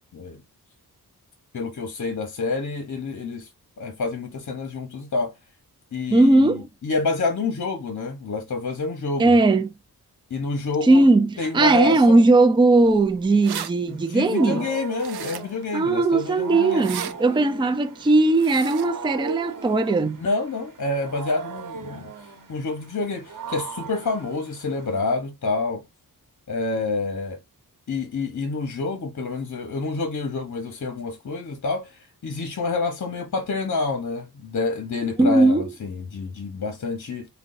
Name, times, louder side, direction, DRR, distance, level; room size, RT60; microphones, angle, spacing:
voice 1, 1.5-3.5 3.8-5.3 5.9-9.3 10.3-11.0 11.4-12.2 13.9-16.9 20.2-25.8 26.5-27.4 27.9-37.3, left 3 dB, 50° left, 1.0 m, -28 dB
voice 2, 6.1-6.7 9.2-9.7 10.9-14.7 15.7-20.2 35.2-35.7, right 2 dB, 15° right, 0.5 m, -18 dB
sound 1, 13.2-13.7 15.0-15.6 16.7-17.1 18.3-18.9, right 9 dB, 85° right, 0.6 m, -34 dB
Wild animals, 13.9-25.1, right 5 dB, 55° right, 1.1 m, -38 dB
5.2 x 2.3 x 2.6 m
cardioid pair, 55°, 38 cm